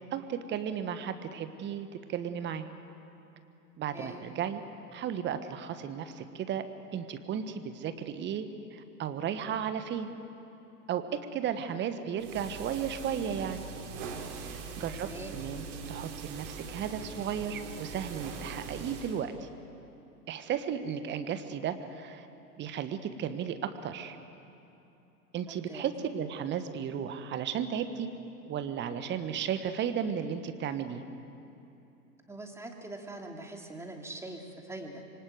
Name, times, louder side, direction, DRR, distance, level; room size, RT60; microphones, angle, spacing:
voice 1, 0.1-2.7 3.8-4.6 4.9-6.6 6.9-10.1 10.9-13.6 14.4-19.5 20.3-22.3 22.6-24.2 25.3-28.1 28.4-31.0, right 8 dB, 20° right, 10 dB, 1.4 m, -34 dB
sound 1, 12.2-19.2, right 5 dB, 45° right, 4.3 m, -42 dB
voice 2, 14.8-15.4 25.5-25.8 32.3-35.0, right 2 dB, 5° right, 2 dB, 2.7 m, -43 dB
26.0 x 24.5 x 8.0 m, 2.9 s
figure-of-eight pair, 100°, 48 cm